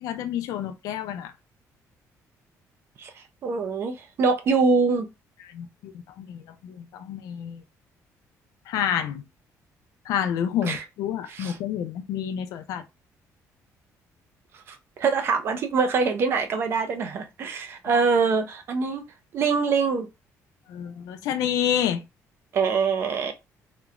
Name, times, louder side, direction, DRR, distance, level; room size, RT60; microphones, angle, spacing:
voice 1, 0.0-1.3 5.5-5.9 6.2-7.6 8.7-9.2 10.1-12.8 17.9-18.0 20.7-22.0, left 9 dB, 80° left, 0.4 m, -29 dB
voice 2, 3.4-5.1 10.6-10.8 11.3-11.6 14.7-19.0 19.3-20.1 22.5-23.3, right 4 dB, 40° right, 0.4 m, -24 dB
2.9 x 2.0 x 2.4 m
cardioid pair, 180°, 6 cm